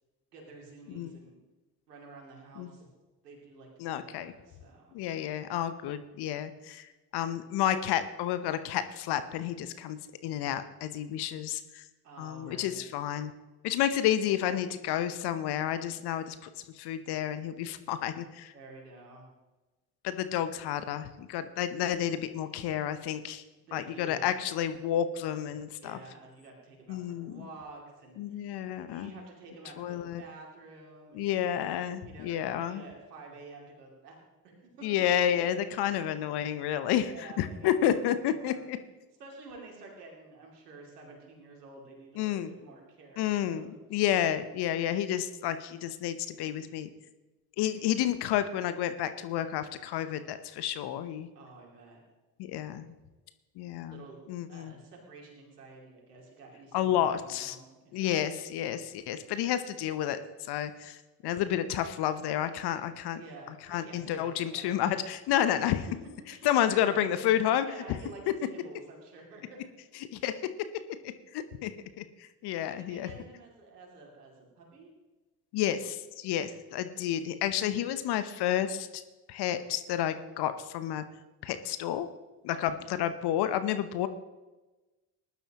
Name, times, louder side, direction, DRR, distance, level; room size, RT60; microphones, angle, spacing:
voice 1, 0.3-1.4 1.9-2.9 3.2-5.0 12.0-12.8 18.5-19.3 23.6-24.4 25.8-28.5 28.8-31.3 32.0-34.8 37.0-38.6 39.2-43.7 51.3-52.0 53.9-54.2 54.5-58.2 63.1-64.8 66.3-69.6 72.7-74.9 82.5-82.9, right 3 dB, 85° right, 0 dB, 2.8 m, -50 dB
voice 2, 3.8-4.3 4.9-11.8 12.2-13.3 13.6-16.4 16.8-18.5 20.0-23.4 23.7-26.0 26.9-27.4 28.2-29.1 29.8-30.2 31.1-32.8 34.8-38.8 42.2-42.5 43.2-46.9 47.6-51.3 52.4-52.9 53.6-54.0 54.3-54.7 56.7-57.6 57.9-61.0 61.2-63.2 63.7-65.9 66.4-67.7 70.1-70.3 71.0-71.7 72.0-72.1 72.4-73.1 75.5-79.0 79.3-81.0 81.4-82.1 82.4-84.1, left 10 dB, 55° left, 12 dB, 0.9 m, -30 dB
19.5 x 11.5 x 3.0 m, 1.1 s
figure-of-eight pair, 50°, 46 cm